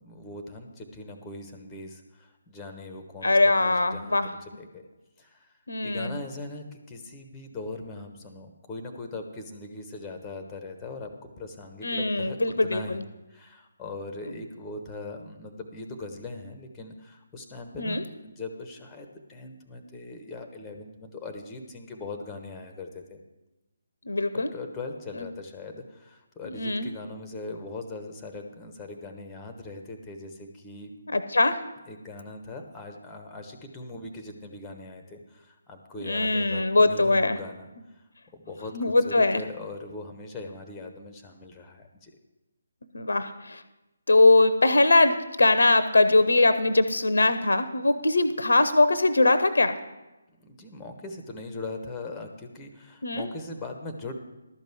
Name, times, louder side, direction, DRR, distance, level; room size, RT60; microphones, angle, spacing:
voice 1, 0.0-4.8 5.2-5.5 5.8-13.0 13.3-23.2 24.3-30.9 31.9-38.0 38.3-42.1 50.4-54.1, left 2 dB, 10° left, 5 dB, 1.0 m, -40 dB
voice 2, 3.2-4.3 5.7-6.2 11.8-13.0 17.8-18.0 24.1-24.5 25.2-25.3 26.5-26.9 31.1-31.6 36.0-37.4 38.7-39.4 42.9-43.6 44.1-49.7 53.0-53.3, left 2 dB, 65° left, 11 dB, 0.8 m, -21 dB
12.0 x 5.3 x 7.5 m, 1.0 s
figure-of-eight pair, 145°, 0 cm